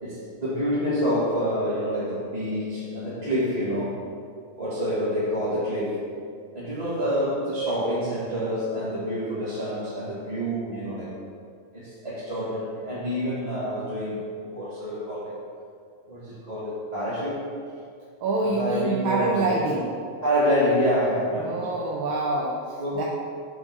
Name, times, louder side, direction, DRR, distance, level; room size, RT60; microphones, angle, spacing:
voice 1, 0.0-4.0 4.6-6.1 6.5-11.2 11.7-15.3 16.1-17.4 18.4-19.6 20.2-21.7 22.8-23.0, equal, 20° right, -12 dB, 1.9 m, -27 dB
voice 2, 18.2-19.9 21.4-23.0, right 2 dB, 75° right, -3 dB, 1.6 m, -26 dB
9.3 x 3.9 x 6.6 m, 2.4 s
omnidirectional pair, 2.3 m